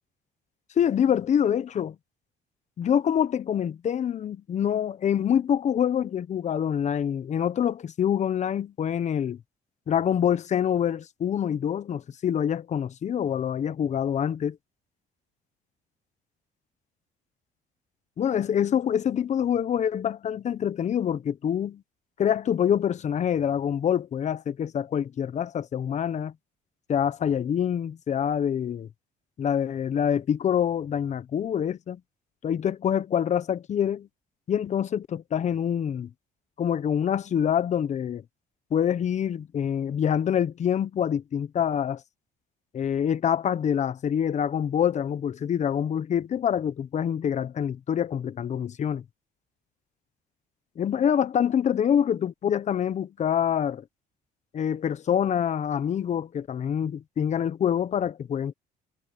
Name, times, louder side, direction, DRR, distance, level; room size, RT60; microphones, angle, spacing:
voice 1, 0.8-1.9 2.8-9.4 9.9-14.6 18.2-21.8 22.2-26.3 26.9-28.9 29.4-32.0 32.4-34.1 34.5-36.1 36.6-38.2 38.7-42.0 42.7-49.0 50.8-53.8 54.5-58.5, left 9 dB, 45° left, 1.0 m, -26 dB
cardioid pair, 110°, 17 cm